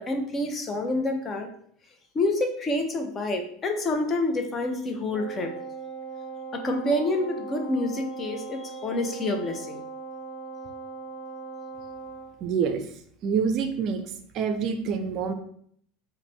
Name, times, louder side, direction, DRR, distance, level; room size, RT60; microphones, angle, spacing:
voice 1, 0.0-1.5 2.1-5.5 6.5-9.8, left 2 dB, 30° left, 4 dB, 0.6 m, -28 dB
Wind instrument woodwind instrument, 5.1-12.4, right 4 dB, 70° left, 1.0 m, -39 dB
voice 2, 12.4-12.8 13.2-14.0 14.3-15.3, right 6 dB, 45° right, 7 dB, 0.4 m, -26 dB
4.8 x 2.1 x 3.3 m, 0.65 s
figure-of-eight pair, 75°, 0 cm